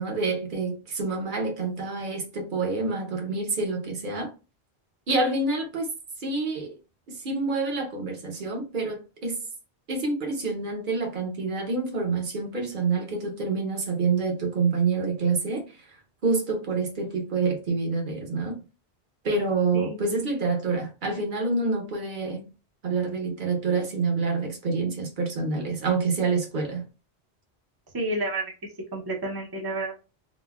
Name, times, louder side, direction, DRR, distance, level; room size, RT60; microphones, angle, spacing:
voice 1, 0.0-4.3 5.1-5.9 6.2-6.7 7.1-9.4 9.9-15.6 16.2-18.6 19.2-22.5 22.8-26.9, right 4 dB, 50° right, 0.9 m, -27 dB
voice 2, 27.9-28.5 28.9-30.0, right 2 dB, 25° right, 0.5 m, -30 dB
4.0 x 2.1 x 2.3 m
omnidirectional pair, 1.1 m